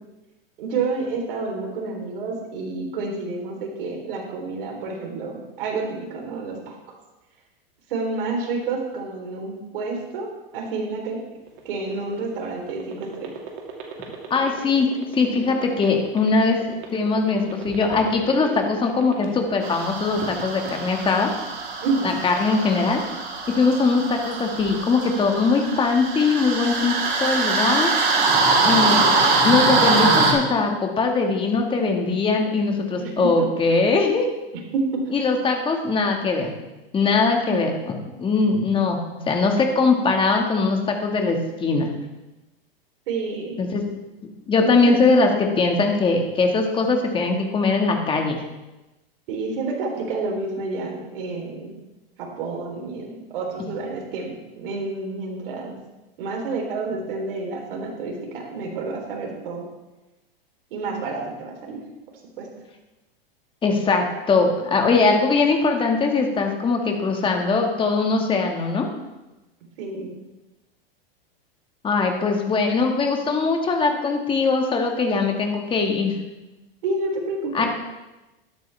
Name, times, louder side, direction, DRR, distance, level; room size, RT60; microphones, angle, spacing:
voice 1, 0.6-6.7 7.9-11.2 11.7-13.3 21.8-22.1 33.0-33.5 34.7-35.0 43.1-43.6 44.6-44.9 49.3-51.7 52.2-55.7 56.2-59.6 60.7-61.8 62.4-62.5 69.8-70.1 76.8-77.7, right 3 dB, 65° right, 1 dB, 3.6 m, -29 dB
sound 1, 11.4-19.6 20.0-20.7, right 7 dB, 45° right, 2.4 m, -37 dB
voice 2, 14.3-16.6 16.9-21.3 22.0-23.0 23.5-27.9 28.6-29.1 29.4-34.3 35.1-36.5 36.9-37.9 38.2-41.9 43.6-43.8 44.5-48.4 63.6-68.9 71.8-76.1 77.5-77.7, left 4 dB, 15° left, 3 dB, 1.7 m, -21 dB
sound 2, 19.6-30.3, right 3 dB, 85° right, 3.8 m, -23 dB
13.0 x 11.5 x 3.4 m, 1.0 s
hypercardioid pair, 130°, 30 cm